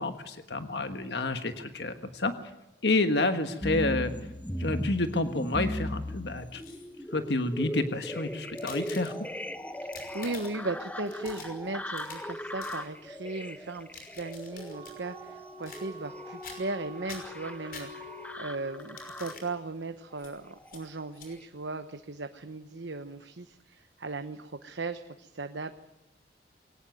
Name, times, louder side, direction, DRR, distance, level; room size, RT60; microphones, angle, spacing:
voice 1, 0.0-2.3 2.8-4.1 4.6-6.6 7.1-9.1, left 2 dB, 65° left, 8 dB, 1.5 m, -29 dB
sound 1, 3.6-19.5 20.2-20.8 21.3-21.4, left 1 dB, 10° left, 1.0 m, -38 dB
sound 2, 6.4-7.1 7.8-9.4 9.8-10.7 11.1-12.3 12.6-12.8 13.7-15.0 15.6-16.1 16.4-16.8 17.1-18.3 18.8-19.5 20.2-20.3 20.7-20.8 21.1-21.3, left 5 dB, 50° left, 5.7 m, -48 dB
voice 2, 9.8-25.7, right 3 dB, 75° right, 8 dB, 1.0 m, -37 dB
Wind instrument woodwind instrument, 14.7-19.0, left 1 dB, 40° right, 2.2 m, -46 dB
22.5 x 18.5 x 9.4 m, 0.96 s
head